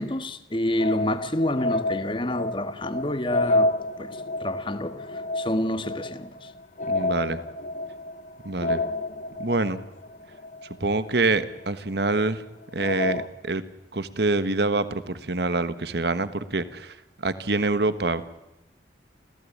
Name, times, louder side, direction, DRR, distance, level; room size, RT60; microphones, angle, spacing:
voice 1, 0.0-3.7 4.0-6.5, left 1 dB, 25° left, 1.5 m, -28 dB
sound 1, 0.8-11.6 12.1-12.2 12.8-13.3, left 2 dB, 40° left, 0.8 m, -29 dB
voice 2, 6.9-7.4 8.4-8.8 9.4-9.8 10.8-12.4 12.7-13.6 13.9-17.0 17.2-18.3, right 2 dB, 60° right, 1.3 m, -26 dB
29.0 x 16.0 x 8.6 m
head